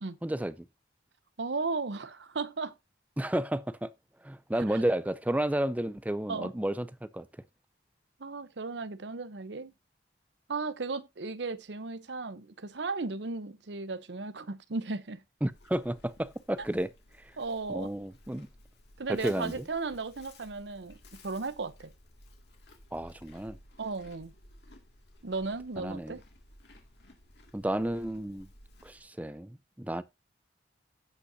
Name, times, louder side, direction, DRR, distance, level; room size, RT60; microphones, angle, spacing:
voice 1, 0.2-0.5 3.2-3.9 4.2-7.3 15.4-16.9 17.2-17.3 17.7-18.5 19.1-19.7 22.9-23.6 25.8-26.2 27.5-28.5 28.8-30.0, right 1 dB, 10° right, 0.4 m, -32 dB
voice 2, 1.4-2.7 4.7-4.8 6.3-6.5 8.2-9.7 10.5-15.2 17.4-17.9 19.0-21.0 21.2-21.9 23.8-24.3 25.2-26.2, right 3 dB, 75° right, 0.8 m, -35 dB
Livestock farm animals working animals, 15.4-29.0, left 1 dB, 65° left, 2.1 m, -56 dB
16.0 x 5.5 x 2.7 m
head